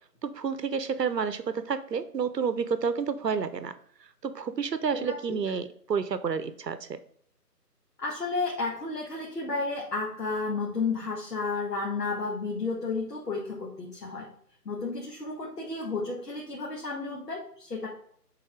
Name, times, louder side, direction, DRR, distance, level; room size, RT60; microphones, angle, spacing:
voice 1, 0.2-3.7 4.2-7.0, right 6 dB, 80° right, 12 dB, 0.9 m, -30 dB
voice 2, 4.9-5.4 8.0-14.3 14.7-17.9, left 3 dB, 70° left, -3 dB, 1.8 m, -32 dB
8.3 x 3.9 x 3.6 m, 0.63 s
figure-of-eight pair, 170°, 49 cm